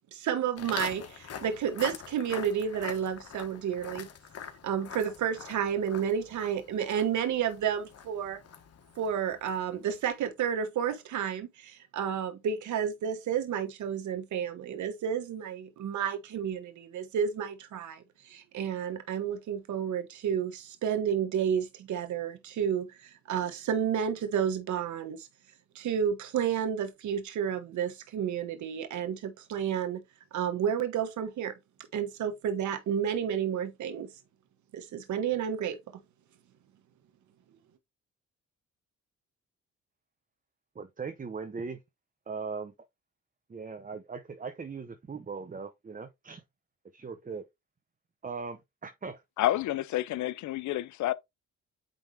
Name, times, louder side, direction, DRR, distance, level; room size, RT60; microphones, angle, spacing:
voice 1, 0.0-4.1 4.6-8.4 9.0-25.3 25.7-30.0 30.3-31.5 31.9-34.1 34.7-35.8, right 8 dB, 75° right, 1.5 m, -31 dB
Walk footsteps, 0.6-9.8, left 8 dB, 55° left, 1.5 m, -44 dB
voice 2, 40.7-41.8 42.3-42.7 43.5-46.4 46.9-47.5 48.2-49.2, right 5 dB, 25° right, 0.9 m, -39 dB
voice 3, 49.4-51.1, left 14 dB, 75° left, 0.6 m, -29 dB
9.1 x 3.5 x 3.4 m
cardioid pair, 90°, 30 cm